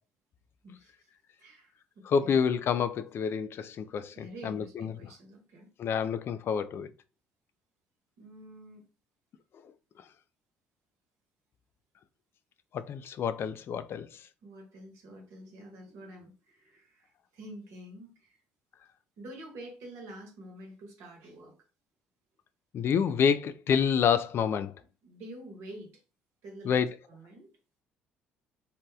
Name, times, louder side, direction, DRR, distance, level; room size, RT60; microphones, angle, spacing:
voice 1, 0.6-1.1 1.4-2.4 4.1-5.7 8.2-8.9 14.4-18.4 19.2-21.6 25.0-26.0 26.4-27.5, right 1 dB, 70° right, 1.0 m, -48 dB
voice 2, 2.1-4.9 5.8-6.9 12.7-14.1 22.7-24.7 26.7-26.9, left 7 dB, 55° left, 0.3 m, -28 dB
2.7 x 2.2 x 3.3 m
hypercardioid pair, 60°, 5 cm